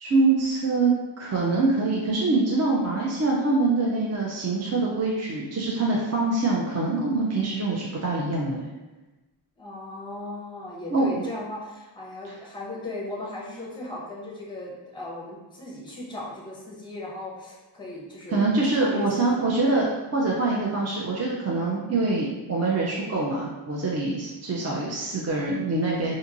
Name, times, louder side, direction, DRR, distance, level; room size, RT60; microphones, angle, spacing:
voice 1, 0.0-0.9 1.2-8.6 10.9-11.2 12.2-12.3 18.3-19.9 20.1-26.2, right 3 dB, 35° right, -4 dB, 0.4 m, -24 dB
voice 2, 9.6-18.4 18.7-19.9 24.5-24.8, left 2 dB, 10° left, -4 dB, 0.6 m, -37 dB
2.8 x 2.6 x 2.5 m, 1.1 s
wide cardioid pair, 70°, 49 cm